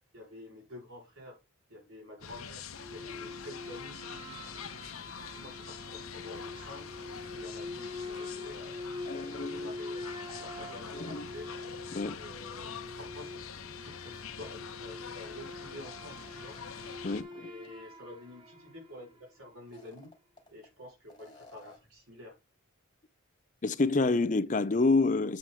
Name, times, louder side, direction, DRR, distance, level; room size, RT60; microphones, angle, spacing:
voice 1, 0.1-1.4 1.7-2.6 2.9-4.0 4.7-6.9 7.3-8.9 9.3-10.1 10.4-11.5 12.1-13.5 13.8-16.6 17.3-20.1 20.5-22.4, left 1 dB, 80° right, 4.3 m, -49 dB
sound 1, 2.2-17.2, left 6 dB, 85° left, 1.0 m, -45 dB
sound 2, 2.7-19.3, left 2 dB, 20° right, 1.5 m, -44 dB
voice 2, 9.1-9.7 10.3-10.4 10.9-11.3 11.9-12.2 17.0-17.5 23.6-25.4, left 3 dB, 35° left, 0.5 m, -28 dB
sound 3, 16.2-17.3 17.6-17.7 19.6-20.7 21.1-22.0, left 2 dB, 20° left, 2.2 m, -57 dB
7.7 x 4.8 x 5.5 m
head